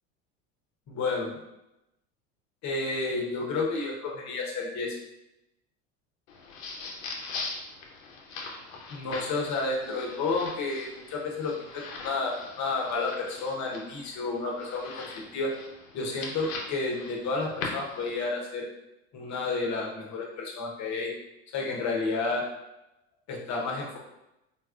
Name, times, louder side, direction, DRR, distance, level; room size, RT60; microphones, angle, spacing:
voice 1, 0.9-1.3 2.6-5.0 8.9-15.0 15.3-15.5 15.9-18.7 19.1-21.1 21.5-22.5 23.3-24.0, left 3 dB, 45° left, 0 dB, 0.9 m, -31 dB
sound 1, 6.3-18.3, left 3 dB, 80° left, 0.8 m, -41 dB
3.9 x 2.3 x 2.3 m, 0.90 s
supercardioid pair, 95°, 39 cm